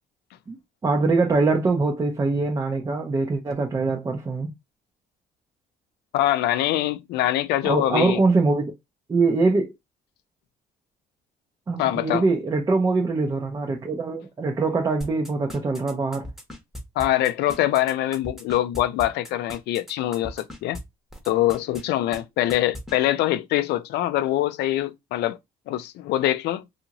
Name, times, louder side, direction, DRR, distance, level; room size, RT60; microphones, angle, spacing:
voice 1, 0.5-4.5 7.6-8.7 9.1-9.7 11.7-16.3, right 3 dB, 20° right, 0.5 m, -23 dB
voice 2, 6.1-8.2 11.8-12.2 17.0-20.8 21.3-25.4 25.7-26.6, left 14 dB, 80° left, 0.4 m, -24 dB
sound 1, 15.0-20.8 21.1-21.8 22.1-22.2 22.5-23.0, left 1 dB, ahead, 0.9 m, -38 dB
2.6 x 2.4 x 2.8 m
cardioid pair, 110°, 17 cm